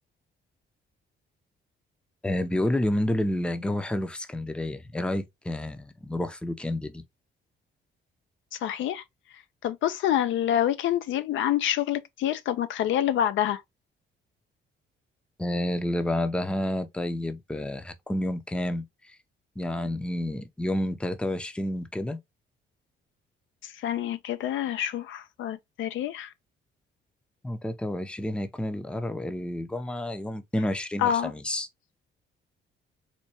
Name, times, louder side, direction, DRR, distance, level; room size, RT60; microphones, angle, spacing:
voice 1, 2.2-7.0 15.4-19.2 19.6-22.2 27.4-31.7, left 1 dB, 5° left, 0.5 m, -30 dB
voice 2, 8.6-9.0 9.6-13.6 23.8-26.3 31.0-31.3, left 11 dB, 75° left, 0.4 m, -27 dB
4.3 x 2.2 x 2.8 m
cardioid pair, 90°, 20 cm